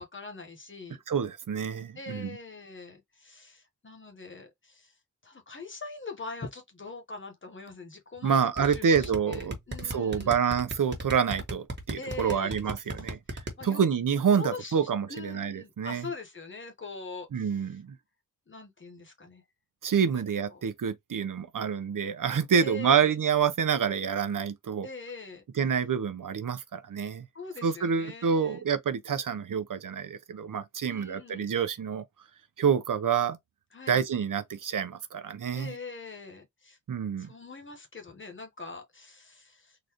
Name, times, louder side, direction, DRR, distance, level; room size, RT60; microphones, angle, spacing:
voice 1, 0.0-1.0 1.9-4.9 5.2-10.4 11.9-12.5 13.6-13.8 14.4-14.8 15.1-17.8 18.5-19.4 20.1-20.6 22.5-23.1 24.8-25.4 27.3-28.6 30.9-31.5 33.7-34.0 35.5-36.8 37.2-39.8, left 3 dB, 35° left, 1.1 m, -43 dB
voice 2, 1.1-2.4 8.2-9.5 9.8-13.2 13.6-16.0 17.3-17.9 19.8-24.9 25.5-27.2 27.6-32.0 32.6-33.4 33.9-35.7 36.9-37.3, right 7 dB, 75° right, 0.7 m, -27 dB
sound 1, 8.6-13.5, right 1 dB, 35° right, 1.4 m, -35 dB
3.9 x 2.5 x 2.9 m
wide cardioid pair, 105°, 32 cm